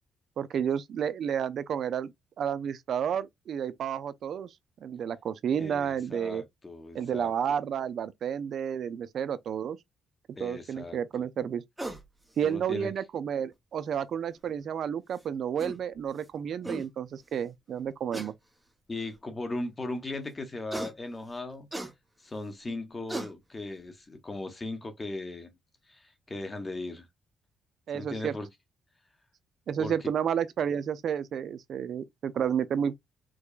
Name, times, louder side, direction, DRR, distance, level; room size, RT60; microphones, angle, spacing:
voice 1, 0.4-2.1 2.4-4.5 4.8-6.4 6.9-9.8 10.4-11.6 12.4-18.3 27.9-28.3 29.7-33.0, right 8 dB, 65° right, 0.5 m, -31 dB
voice 2, 5.6-7.3 10.3-11.0 12.4-12.9 18.9-21.7 22.2-25.5 25.9-27.1 27.9-28.5 29.8-29.9, left 2 dB, 25° left, 0.9 m, -38 dB
sound 1, 11.8-12.1 13.5-13.6 15.2-15.3 15.6-15.8 16.3-16.4 16.6-16.9 18.1-18.3 19.1-19.2 20.7-20.9 21.7-21.9 22.7-22.8 23.1-23.3, right 1 dB, 10° right, 0.8 m, -36 dB
4.7 x 2.2 x 2.4 m
cardioid pair, 90°, 0 cm